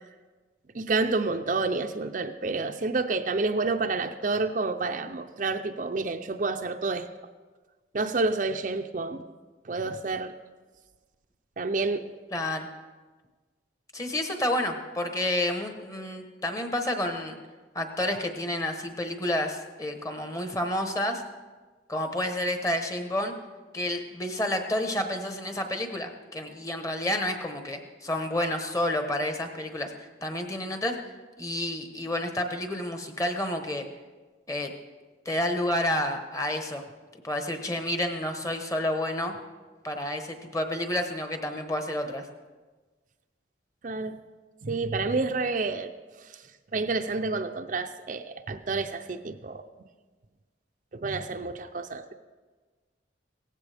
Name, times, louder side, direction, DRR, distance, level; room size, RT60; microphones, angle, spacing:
voice 1, 0.7-7.1 7.9-9.3 9.6-10.3 11.6-12.0 43.8-44.2 44.6-45.9 46.2-46.4 46.7-49.6 50.9-52.1, right 3 dB, 45° right, 6 dB, 0.5 m, -29 dB
voice 2, 12.3-12.7 13.9-17.4 17.7-21.2 21.9-23.3 23.7-29.9 30.2-31.0 31.4-33.8 34.5-34.7 35.2-36.8 37.2-39.3 39.8-42.3, left 1 dB, 15° left, 5 dB, 1.0 m, -30 dB
17.0 x 15.0 x 3.4 m, 1.3 s
head